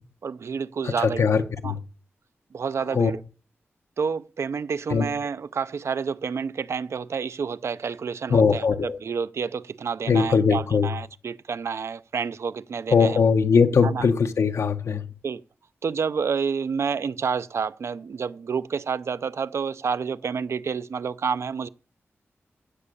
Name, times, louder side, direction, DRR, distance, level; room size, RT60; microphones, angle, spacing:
voice 1, 0.2-1.7 2.5-3.2 4.0-13.2 13.8-14.1 15.2-15.4 15.8-21.7, right 6 dB, 70° right, 0.6 m, -29 dB
voice 2, 0.8-1.8 2.9-3.1 4.9-5.1 8.3-9.0 10.1-10.9 12.9-15.1, left 5 dB, 85° left, 1.3 m, -20 dB
16.5 x 6.4 x 8.5 m
wide cardioid pair, 145°, 5 cm